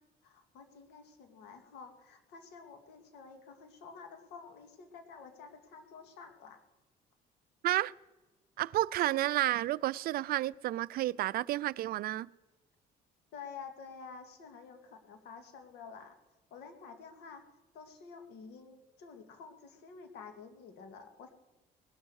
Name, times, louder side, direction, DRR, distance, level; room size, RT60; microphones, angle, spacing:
voice 1, 0.2-6.6 13.3-16.2 16.5-21.3, left 5 dB, 80° left, 2.1 m, -50 dB
voice 2, 8.6-12.3, right 15 dB, 65° right, 0.4 m, -31 dB
20.0 x 12.5 x 4.8 m
cardioid pair, 110°, 17 cm